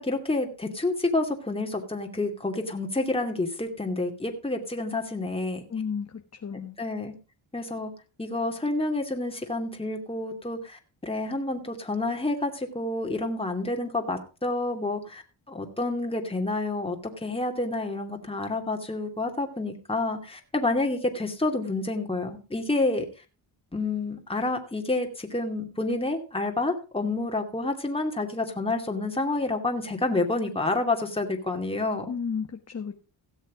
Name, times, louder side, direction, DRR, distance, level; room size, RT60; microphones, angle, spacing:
voice 1, 0.0-5.6 6.8-7.1 7.5-7.9 8.2-15.2 15.5-23.1 23.7-32.1, left 2 dB, 10° left, 3 dB, 2.5 m, -29 dB
voice 2, 5.7-6.8 32.1-33.0, left 6 dB, 30° left, 6 dB, 1.2 m, -33 dB
16.5 x 6.5 x 4.9 m, 0.34 s
supercardioid pair, 65°, 49 cm